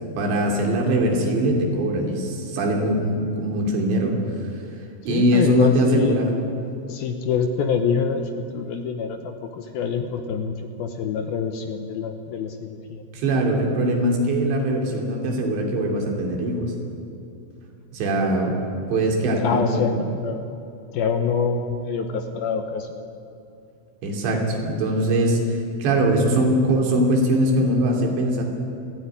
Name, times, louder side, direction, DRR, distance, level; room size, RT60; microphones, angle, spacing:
voice 1, 0.2-4.5 5.1-6.4 13.1-16.7 17.9-18.6 18.9-20.0 24.0-28.4, right 1 dB, 65° right, 1 dB, 5.0 m, -22 dB
voice 2, 5.1-6.4 6.9-13.0 19.4-20.4 20.9-22.9, left 6 dB, 75° left, 6 dB, 2.2 m, -25 dB
23.0 x 16.0 x 9.8 m, 2.7 s
omnidirectional pair, 5.8 m